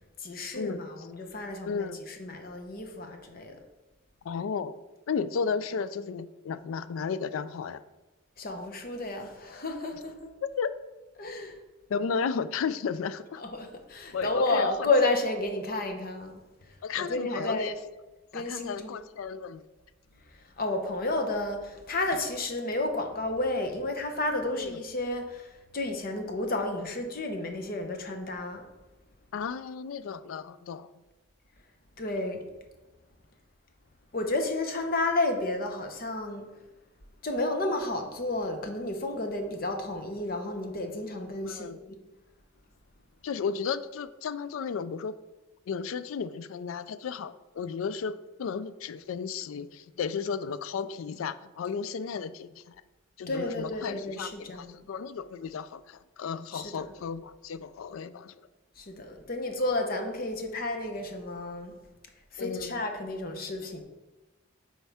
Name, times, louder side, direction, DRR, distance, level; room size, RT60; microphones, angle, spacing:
voice 1, 0.2-3.6 8.4-10.3 11.2-11.6 13.4-17.8 18.3-19.0 20.2-28.6 32.0-32.4 34.1-36.4 37.2-42.0 53.3-54.7 56.5-56.9 58.8-61.7 62.3-63.8, left 2 dB, 45° left, 5 dB, 0.8 m, -31 dB
voice 2, 1.7-2.0 4.2-7.8 10.6-10.7 11.9-13.4 14.1-14.9 16.8-17.7 18.3-19.6 24.5-24.8 29.3-30.9 41.4-41.8 43.2-45.2 45.7-52.8 53.2-58.3 62.4-62.7, left 6 dB, 85° left, 15 dB, 0.4 m, -34 dB
8.4 x 4.6 x 3.5 m, 1.1 s
head